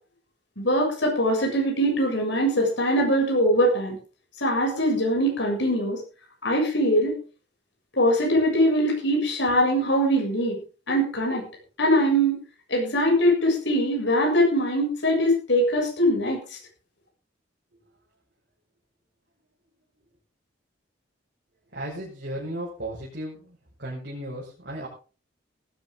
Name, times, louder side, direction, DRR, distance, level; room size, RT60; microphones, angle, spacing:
voice 1, 0.6-4.0 4.4-6.0 6.4-7.2 8.0-10.6 10.9-11.5 11.8-12.4 12.7-16.4, equal, 65° left, 0 dB, 7.3 m, -22 dB
voice 2, 21.7-24.9, right 1 dB, 55° right, -4 dB, 6.1 m, -35 dB
18.5 x 13.0 x 3.8 m, 0.36 s
head